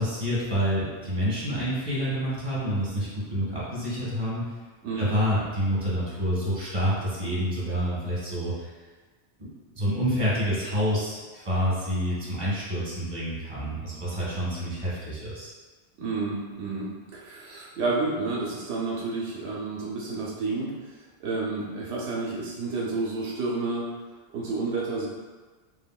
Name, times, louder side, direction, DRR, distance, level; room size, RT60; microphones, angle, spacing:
voice 1, 0.0-4.4 5.0-8.7 9.7-15.5, equal, 30° right, -9 dB, 1.2 m, -28 dB
voice 2, 16.0-20.7 21.2-23.9 24.3-25.1, right 3 dB, 85° right, -4 dB, 0.9 m, -30 dB
3.2 x 2.7 x 2.2 m, 1.3 s
omnidirectional pair, 1.1 m